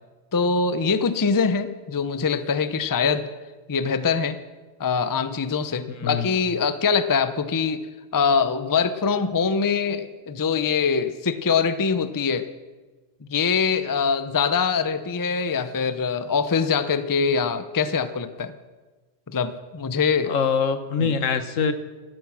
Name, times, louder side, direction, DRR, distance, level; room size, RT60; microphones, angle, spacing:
voice 1, 0.3-3.3 3.7-4.4 4.8-7.9 8.1-12.4 13.3-18.5 19.3-20.4 21.0-21.1, left 5 dB, 25° left, 12 dB, 0.5 m, -23 dB
voice 2, 6.0-6.3 20.3-21.7, left 6 dB, 80° left, 11 dB, 1.4 m, -23 dB
15.0 x 12.5 x 6.2 m, 1.3 s
omnidirectional pair, 1.3 m